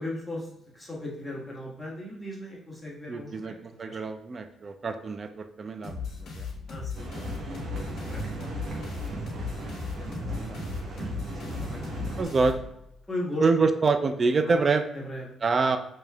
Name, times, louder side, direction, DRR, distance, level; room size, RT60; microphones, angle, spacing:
voice 1, 0.0-4.0 6.7-9.1 9.9-12.3 13.1-13.4 14.4-14.6 14.9-15.3 15.7-15.8, left 1 dB, 5° left, -5 dB, 1.4 m, -39 dB
voice 2, 3.1-3.5 3.8-6.4 10.3-10.6 12.2-12.6 13.4-14.8 15.4-15.8, right 4 dB, 40° right, 9 dB, 0.4 m, -26 dB
sound 1, 5.8-13.0, left 5 dB, 65° left, 0.9 m, -37 dB
sound 2, 7.0-12.2, right 3 dB, 65° right, 0.8 m, -36 dB
4.8 x 3.0 x 2.3 m, 0.82 s
cardioid pair, 90°, 0 cm